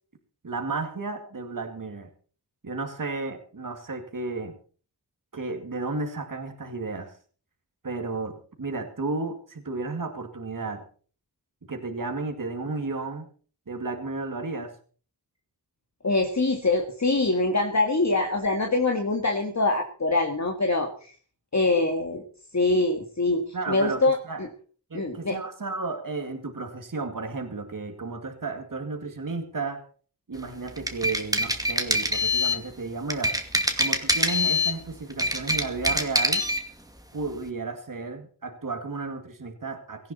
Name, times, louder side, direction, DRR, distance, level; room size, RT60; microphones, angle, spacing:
voice 1, 0.4-2.1 2.6-4.5 5.3-7.1 7.8-10.8 11.7-13.3 13.7-14.7 23.5-24.4 24.9-29.8 30.3-33.3 33.8-36.4 37.1-40.1, right 3 dB, 55° right, 4 dB, 2.3 m, -33 dB
voice 2, 16.0-21.1 21.5-22.2 22.5-24.5 24.9-25.4, left 2 dB, 45° left, 3 dB, 1.9 m, -24 dB
sound 1, 30.7-32.6 33.1-34.8 35.1-36.6, left 1 dB, 10° right, 2.3 m, -24 dB
17.5 x 14.5 x 4.2 m, 0.42 s
wide cardioid pair, 55°, 39 cm